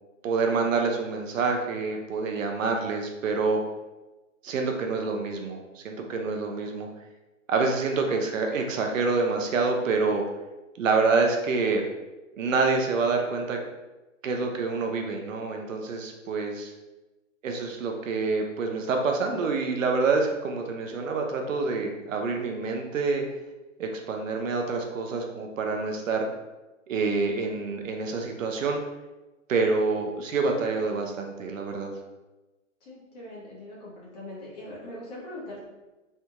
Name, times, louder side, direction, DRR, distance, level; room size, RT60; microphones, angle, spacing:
voice 1, 0.2-3.6 4.4-6.9 7.5-10.2 10.8-11.8 12.4-13.6 14.2-16.7 17.4-23.2 23.8-26.3 26.9-28.8 29.5-31.9, right 4 dB, 80° right, 3 dB, 0.6 m, -27 dB
voice 2, 32.8-35.6, left 1 dB, 30° left, -6 dB, 1.2 m, -41 dB
3.3 x 2.3 x 2.8 m, 1.1 s
hypercardioid pair, 160°, 38 cm